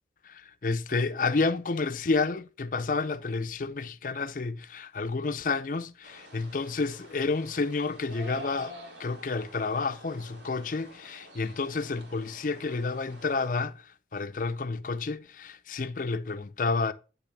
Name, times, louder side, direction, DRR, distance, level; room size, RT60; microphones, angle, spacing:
voice 1, 0.2-8.7 9.0-13.8 14.1-16.9, left 4 dB, 50° left, 0.5 m, -30 dB
sound 1, 6.0-13.5, equal, 90° right, 2.4 m, -48 dB
10.5 x 3.5 x 5.7 m
head